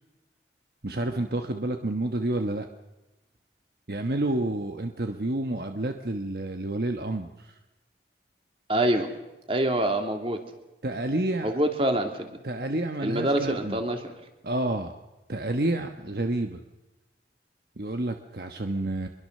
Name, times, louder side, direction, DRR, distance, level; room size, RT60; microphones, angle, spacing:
voice 1, 0.8-2.7 3.9-7.5 10.8-11.5 12.4-13.8 14.4-14.9 15.3-16.6 17.8-19.1, right 1 dB, 60° right, 6 dB, 1.2 m, -29 dB
voice 2, 8.7-9.1 9.5-10.4 11.4-12.4 13.0-14.0, right 1 dB, 30° right, 5 dB, 2.7 m, -25 dB
24.5 x 22.0 x 6.6 m, 1.0 s
head